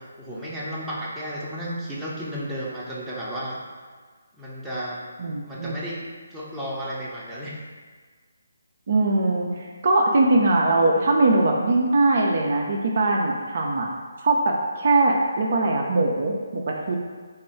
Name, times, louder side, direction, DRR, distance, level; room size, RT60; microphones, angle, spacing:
voice 1, 0.0-3.6 4.4-5.0 5.4-7.6, equal, 5° right, -9 dB, 0.6 m, -33 dB
voice 2, 5.2-5.7 8.9-13.9 14.2-16.9, right 2 dB, 45° right, 0 dB, 0.4 m, -21 dB
3.4 x 2.2 x 4.4 m, 1.5 s
figure-of-eight pair, 145°, 0 cm